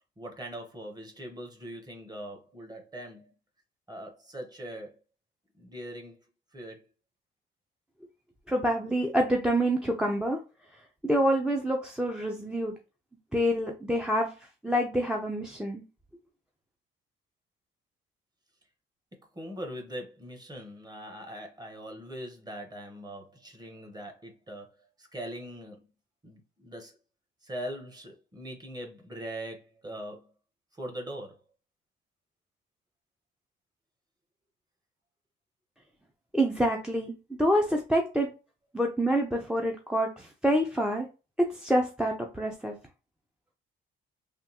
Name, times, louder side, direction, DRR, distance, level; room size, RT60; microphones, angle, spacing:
voice 1, 0.2-3.3 3.9-5.0 5.6-6.2 6.5-6.9 19.3-25.9 26.2-27.0 27.4-30.3 30.7-31.4, equal, 20° right, 1.0 m, -41 dB
voice 2, 8.5-10.4 11.0-12.8 13.3-14.3 14.6-15.8 36.3-37.1 37.4-38.3 38.7-41.1 41.4-42.7, equal, 5° right, 0.5 m, -27 dB
3.5 x 2.3 x 2.9 m
cardioid pair, 90°, 20 cm